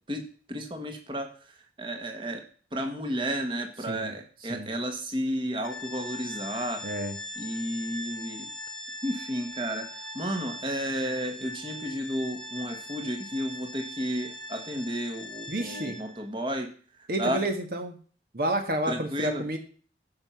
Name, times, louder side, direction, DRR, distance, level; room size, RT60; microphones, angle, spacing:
voice 1, 0.1-2.4 2.7-6.8 7.4-8.5 9.0-17.4 18.8-19.4, equal, 25° right, 5 dB, 1.5 m, -32 dB
Organ, 5.6-16.3, left 1 dB, 5° left, 1.4 m, -40 dB
voice 2, 6.8-7.1 15.5-16.0 17.1-18.0 18.3-19.6, right 1 dB, 55° right, 5 dB, 1.4 m, -30 dB
14.5 x 5.8 x 5.8 m, 0.43 s
head